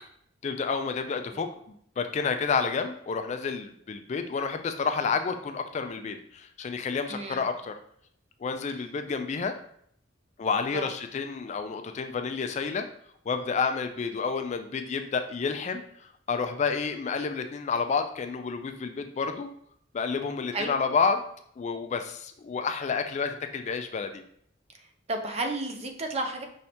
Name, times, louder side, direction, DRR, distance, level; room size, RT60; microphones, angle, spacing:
voice 1, 0.4-1.5 2.0-7.7 8.4-9.5 10.4-12.8 13.3-15.8 16.3-19.5 19.9-21.2 21.6-24.2, left 5 dB, 35° left, 7 dB, 0.3 m, -29 dB
voice 2, 7.1-7.5 10.7-10.9 20.5-20.8 25.1-26.4, right 2 dB, 35° right, 4 dB, 0.5 m, -32 dB
5.6 x 3.2 x 2.8 m, 0.67 s
head